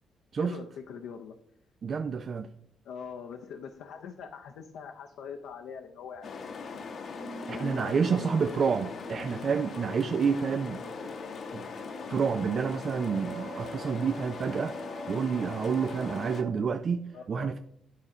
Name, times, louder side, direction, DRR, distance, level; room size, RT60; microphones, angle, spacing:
voice 1, 0.4-1.4 2.8-6.6 7.5-8.7 17.1-17.5, left 6 dB, 85° left, 0.7 m, -43 dB
voice 2, 1.8-2.5 7.5-10.8 11.5-11.6 12.1-14.8 15.1-17.6, right 6 dB, 50° right, 0.4 m, -29 dB
sound 1, 6.2-16.4, left 5 dB, 55° left, 0.9 m, -40 dB
sound 2, 6.2-16.5, right 3 dB, 65° right, 1.5 m, -47 dB
10.0 x 4.2 x 5.0 m
cardioid pair, 90°, 0 cm